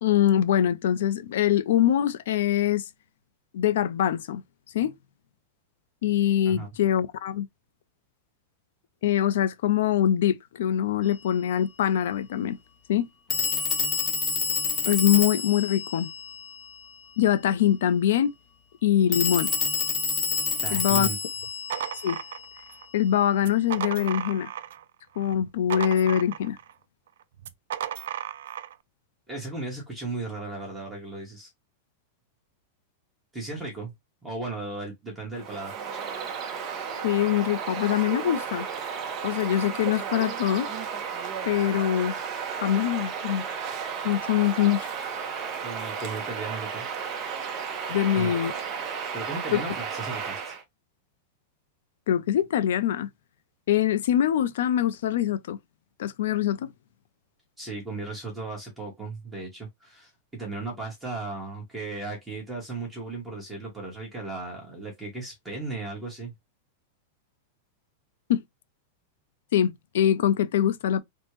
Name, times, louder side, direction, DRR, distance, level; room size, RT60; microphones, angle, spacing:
voice 1, 0.0-2.8 3.5-4.4 4.7-4.9 6.0-7.5 9.0-12.6 12.9-13.1 14.9-16.1 17.2-18.3 18.8-19.5 20.7-21.1 22.0-22.2 22.9-24.5 25.2-26.6 37.0-38.7 39.2-40.7 41.4-42.1 42.6-43.4 44.0-44.9 47.9-48.5 49.5-49.6 52.1-53.1 53.7-55.6 56.0-56.7 68.3-68.4 69.5-71.0, left 10 dB, 70° left, 0.4 m, -23 dB
Telephone, 11.0-11.2 13.3-17.0 19.1-22.8, left 5 dB, 20° left, 0.6 m, -29 dB
voice 2, 20.6-21.2 29.3-31.5 33.3-33.9 34.2-35.7 45.6-46.9 48.1-48.6 49.1-50.5 57.6-66.3, right 3 dB, 5° right, 0.9 m, -36 dB
sound 1, 21.4-22.9 23.4-24.8 25.2-26.7 27.4-28.7, right 11 dB, 80° right, 0.3 m, -35 dB
Bird vocalization bird call bird song, 35.3-50.6, right 6 dB, 25° right, 0.6 m, -33 dB
3.4 x 2.0 x 3.0 m
supercardioid pair, 170°, 0 cm